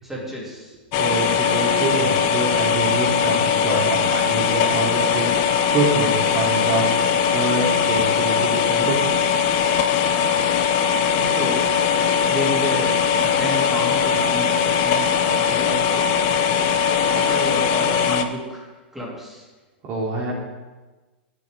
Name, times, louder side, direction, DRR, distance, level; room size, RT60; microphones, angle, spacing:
voice 1, 0.0-0.7 11.1-11.7 12.3-16.3 17.1-19.5, left 1 dB, 5° right, -4 dB, 3.2 m, -31 dB
sound 1, 0.9-18.2, left 7 dB, 45° left, 0.7 m, -20 dB
voice 2, 0.9-5.4 5.7-6.9 7.3-9.2 19.9-20.3, right 2 dB, 40° right, -3 dB, 3.3 m, -25 dB
10.5 x 8.5 x 3.8 m, 1.2 s
hypercardioid pair, 120°, 6 cm